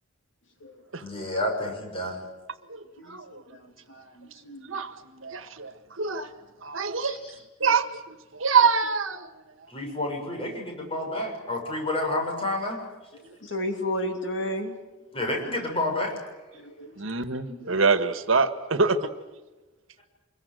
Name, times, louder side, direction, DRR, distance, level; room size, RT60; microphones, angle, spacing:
voice 1, 1.0-2.2 7.0-7.3 9.7-12.8 15.1-16.3 17.5-17.6, left 1 dB, 25° left, 1 dB, 6.9 m, -30 dB
voice 2, 2.7-3.4 3.9-6.3 6.6-7.2 7.6-9.3 17.0-19.1, right 5 dB, 80° right, 10 dB, 1.6 m, -26 dB
voice 3, 4.2-4.6 13.4-14.8 16.5-17.1 17.7-17.8, left 1 dB, 65° left, 5 dB, 2.9 m, -32 dB
26.0 x 22.5 x 7.9 m, 1.1 s
head